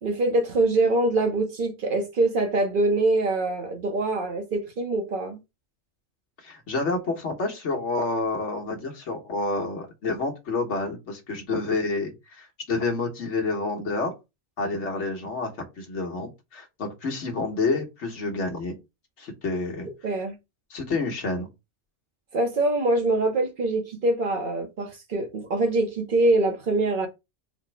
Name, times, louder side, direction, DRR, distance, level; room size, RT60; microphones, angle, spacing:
voice 1, 0.0-5.4 20.0-20.3 22.3-27.1, right 2 dB, 55° right, 0.8 m, -24 dB
voice 2, 6.4-14.1 14.6-15.5 15.8-18.8 19.2-19.9 20.7-21.5, left 3 dB, 80° left, 1.4 m, -29 dB
4.2 x 2.0 x 4.3 m
omnidirectional pair, 1.2 m